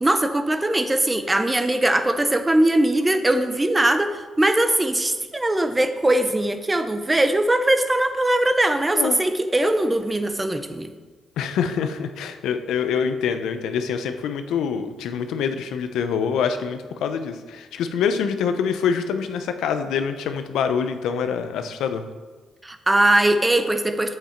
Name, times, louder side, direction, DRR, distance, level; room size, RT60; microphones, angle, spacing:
voice 1, 0.0-10.9 22.6-24.2, right 1 dB, 15° right, 9 dB, 0.7 m, -21 dB
voice 2, 11.4-22.0, left 7 dB, 80° left, 8 dB, 0.6 m, -25 dB
8.0 x 7.3 x 4.5 m, 1.4 s
cardioid pair, 90°, 0 cm